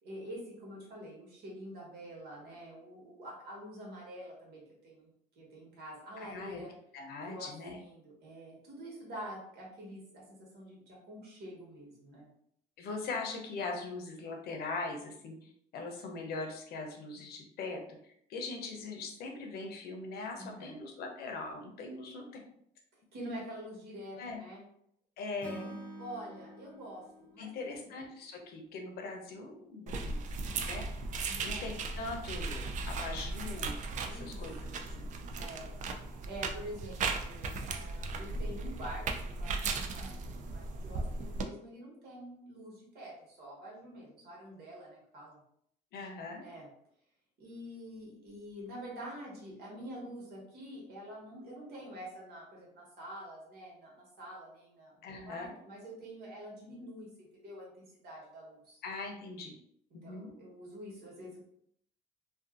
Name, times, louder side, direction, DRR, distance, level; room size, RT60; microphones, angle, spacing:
voice 1, 0.0-5.1 5.4-6.7 7.3-10.2 10.5-12.3 20.4-20.8 23.1-24.6 26.0-27.9 30.5-30.7 31.2-31.7 34.0-34.4 34.7-34.8 35.4-45.4 46.4-46.7 47.4-57.1 57.3-58.8 60.0-61.4, equal, 75° right, -3 dB, 1.3 m, -47 dB
voice 2, 6.2-6.6 6.9-7.8 12.8-22.4 24.2-24.4 25.2-25.8 27.4-30.8 31.4-35.1 45.9-46.4 55.0-55.5 58.8-59.5 59.9-60.3, left 3 dB, 65° left, 2 dB, 0.7 m, -41 dB
Acoustic guitar / Strum, 25.4-28.7, right 1 dB, 10° left, 0.5 m, -48 dB
sound 1, 29.9-41.4, right 3 dB, 50° right, 0.4 m, -37 dB
2.5 x 2.5 x 2.4 m, 0.70 s
cardioid pair, 110°, 17 cm